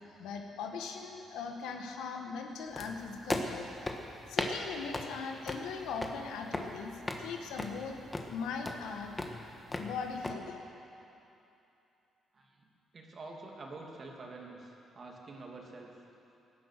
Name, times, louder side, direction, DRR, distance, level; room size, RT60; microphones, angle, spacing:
voice 1, 0.2-3.7 4.3-8.0 8.3-9.1 9.8-10.7, left 5 dB, 90° left, 3 dB, 1.4 m, -40 dB
sound 1, 2.8-10.3, left 2 dB, 20° left, 1.4 m, -39 dB
voice 2, 12.3-12.6 12.9-15.9, right 3 dB, 40° right, 0 dB, 2.5 m, -47 dB
17.5 x 10.5 x 6.7 m, 2.8 s
cardioid pair, 90°, 0 cm